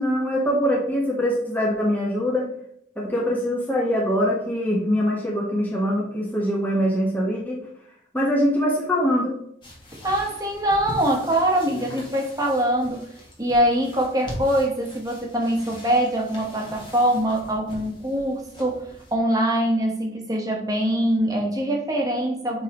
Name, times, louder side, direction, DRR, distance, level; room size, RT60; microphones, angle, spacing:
voice 1, 0.0-2.5 3.0-7.7 8.1-9.3, equal, 10° left, -4 dB, 1.3 m, -23 dB
sound 1, 9.6-19.1, equal, 30° left, 1.7 m, -41 dB
voice 2, 10.0-13.1 13.4-22.6, right 1 dB, 20° right, 1 dB, 1.3 m, -23 dB
8.2 x 3.9 x 3.1 m, 0.70 s
head